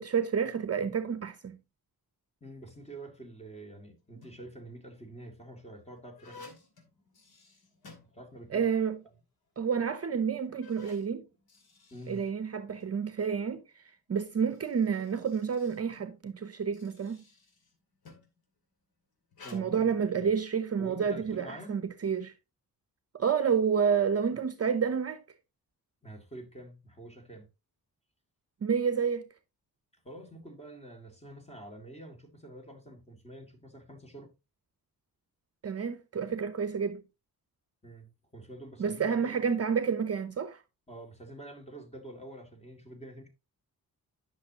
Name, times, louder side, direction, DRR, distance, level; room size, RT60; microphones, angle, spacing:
voice 1, 0.0-1.6 8.5-9.0 9.6-11.3 12.1-13.8 14.1-17.2 19.5-22.3 23.1-25.2 28.6-29.3 35.6-37.0 38.8-40.6, right 6 dB, 40° right, 0.7 m, -29 dB
voice 2, 2.4-6.6 8.1-8.6 11.9-12.2 19.4-20.3 20.8-21.8 26.0-27.5 30.0-34.3 37.8-39.4 40.9-43.3, right 1 dB, 15° left, 2.3 m, -47 dB
sound 1, 4.0-4.6 5.3-8.7 9.0-9.1 9.8-9.9 10.4-13.0 14.2-18.4 19.3-19.6, left 3 dB, 80° left, 2.6 m, -55 dB
10.5 x 6.3 x 2.9 m
wide cardioid pair, 130°, 37 cm